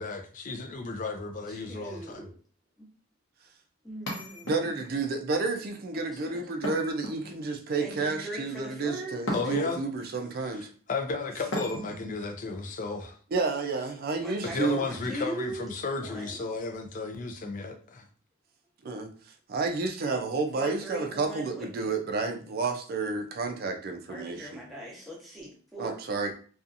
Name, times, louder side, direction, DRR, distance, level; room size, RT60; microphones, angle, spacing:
voice 1, 0.0-2.2 9.3-9.8 10.9-13.2 14.4-18.0, left 3 dB, 40° left, 5 dB, 0.4 m, -33 dB
voice 2, 1.5-2.3 2.8-2.9 3.8-4.5 5.9-6.5 7.8-9.4 14.2-15.7 16.0-16.5 20.5-21.7 24.1-26.0, right 1 dB, ahead, -4 dB, 0.8 m, -40 dB
sound 1, 4.1-5.0 6.6-7.6 9.3-9.9 11.5-12.1, equal, 65° left, 0.8 m, -36 dB
voice 3, 4.4-10.7 13.3-14.9 18.8-19.1 19.5-24.6 25.8-26.3, right 4 dB, 50° right, 5 dB, 0.4 m, -30 dB
2.7 x 2.4 x 2.5 m, 0.42 s
head